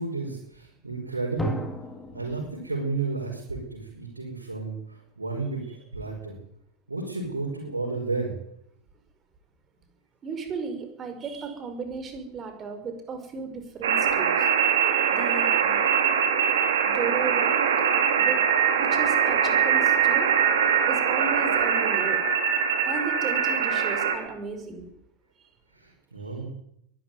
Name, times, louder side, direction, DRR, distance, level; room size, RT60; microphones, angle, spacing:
voice 1, 0.0-1.6 2.1-6.4 6.9-8.3 25.7-26.5, right 3 dB, 80° right, -1 dB, 5.6 m, -32 dB
Drum, 1.4-4.1, left 1 dB, 5° left, 3.5 m, -36 dB
voice 2, 10.2-14.5 15.1-15.9 16.8-17.6 18.2-18.4 18.8-20.3 20.9-22.2 22.9-24.9, right 5 dB, 25° right, 7 dB, 5.4 m, -35 dB
sound 1, 13.8-24.1, right 7 dB, 60° right, 3.9 m, -22 dB
22.5 x 12.5 x 9.6 m, 0.75 s
figure-of-eight pair, 90°, 0 cm